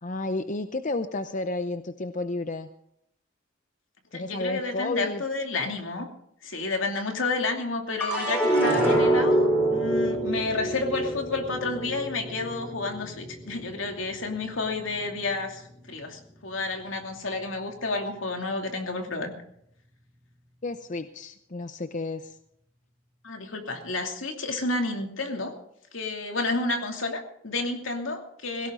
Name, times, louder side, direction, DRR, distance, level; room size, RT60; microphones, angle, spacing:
voice 1, 0.0-2.7 4.1-5.2 20.6-22.4, left 2 dB, 40° left, 9 dB, 0.7 m, -31 dB
voice 2, 4.1-6.1 6.4-19.3 23.2-25.5 25.9-28.7, left 3 dB, 80° left, 3 dB, 2.7 m, -30 dB
sound 1, 8.0-14.4 14.9-15.6, right 1 dB, 10° left, 6.9 m, -26 dB
17.0 x 17.0 x 3.8 m, 0.71 s
head